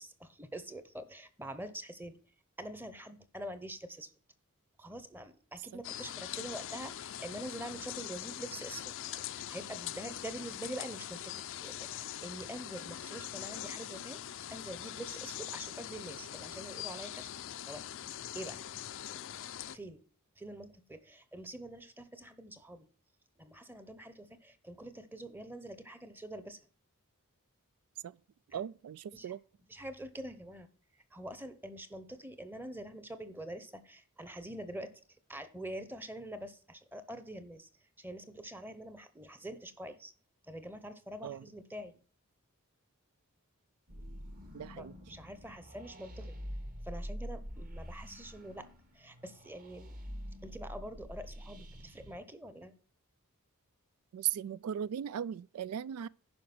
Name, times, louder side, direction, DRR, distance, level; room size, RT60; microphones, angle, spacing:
voice 1, 0.0-2.2 2.6-4.1 4.8-14.2 14.5-17.3 17.6-17.8 18.3-18.6 19.1-19.2 19.7-20.0 20.4-22.9 23.4-26.6 28.5-28.6 29.1-29.4 29.7-30.7 30.9-34.9 35.3-40.1 40.4-41.9 44.8-46.3 46.8-48.7 48.9-50.0 50.4-52.7, right 1 dB, 10° right, 0.9 m, -45 dB
sound 1, 5.8-19.8, left 11 dB, 60° left, 0.5 m, -42 dB
voice 2, 28.5-29.4 41.2-41.4 44.5-44.9 54.1-56.1, right 9 dB, 85° right, 0.3 m, -37 dB
sound 2, 43.9-52.1, equal, 40° right, 1.5 m, -46 dB
10.5 x 5.1 x 6.1 m
head